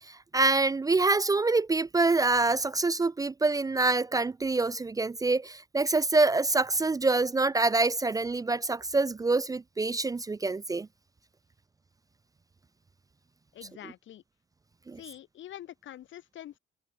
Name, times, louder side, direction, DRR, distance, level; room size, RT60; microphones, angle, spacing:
voice 1, 0.0-10.9 14.9-15.0, right 3 dB, 20° right, 0.4 m, -26 dB
voice 2, 13.5-14.2 15.0-16.6, left 12 dB, 75° left, 2.3 m, -45 dB
open air
cardioid pair, 90°, 20 cm